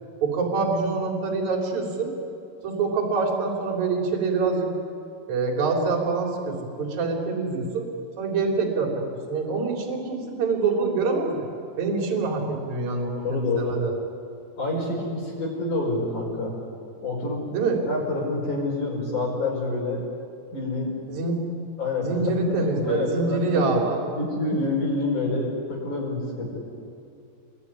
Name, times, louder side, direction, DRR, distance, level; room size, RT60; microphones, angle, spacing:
voice 1, 0.2-2.1 2.6-4.7 5.3-7.9 8.2-11.5 11.8-13.9 17.5-17.8 21.1-21.4 22.0-24.0, right 4 dB, 40° right, 1 dB, 4.5 m, -25 dB
voice 2, 13.1-13.8 14.6-16.5 17.0-17.6 17.9-20.0 20.5-21.0 21.8-22.6 22.8-26.6, left 2 dB, 40° left, -2 dB, 6.3 m, -28 dB
28.0 x 21.5 x 9.9 m, 2.4 s
omnidirectional pair, 5.9 m